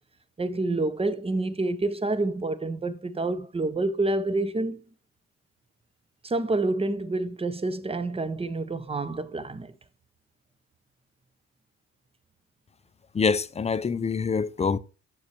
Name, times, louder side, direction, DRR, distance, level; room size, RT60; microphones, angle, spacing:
voice 1, 0.4-4.8 6.2-9.7, right 2 dB, 20° right, 0.8 m, -28 dB
voice 2, 13.1-14.8, left 5 dB, 20° left, 0.5 m, -25 dB
6.9 x 6.5 x 2.9 m
cardioid pair, 90°, 30 cm